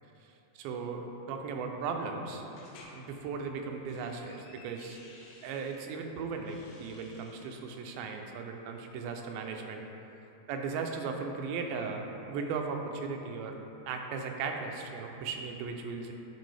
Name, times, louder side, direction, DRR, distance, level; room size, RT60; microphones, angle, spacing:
voice 1, 0.6-2.4 2.9-5.0 5.4-9.8 10.5-13.6 13.9-16.1, right 5 dB, 85° right, 3 dB, 2.4 m, -37 dB
sound 1, 2.5-3.0 3.6-5.9 6.3-7.6, left 2 dB, 85° left, 2.8 m, -56 dB
9.2 x 4.5 x 3.3 m, 3.0 s
omnidirectional pair, 4.3 m